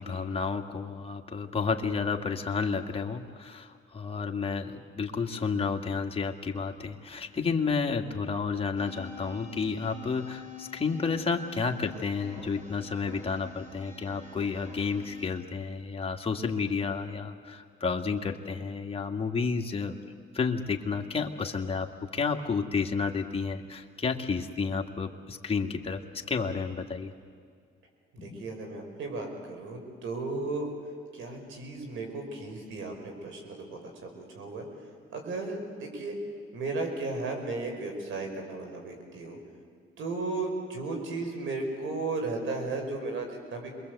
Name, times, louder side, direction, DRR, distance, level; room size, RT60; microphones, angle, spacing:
voice 1, 0.0-20.0 20.3-26.0 26.3-27.1 28.2-28.4, left 5 dB, 30° left, 3 dB, 2.1 m, -31 dB
sound 1, 8.8-15.3, left 2 dB, 40° right, 5.6 m, -47 dB
voice 2, 28.1-30.7 31.1-34.7 35.1-36.2 36.5-39.4 40.0-43.7, right 3 dB, 80° right, 3 dB, 5.6 m, -35 dB
28.0 x 22.0 x 8.1 m, 2.2 s
cardioid pair, 90°, 20 cm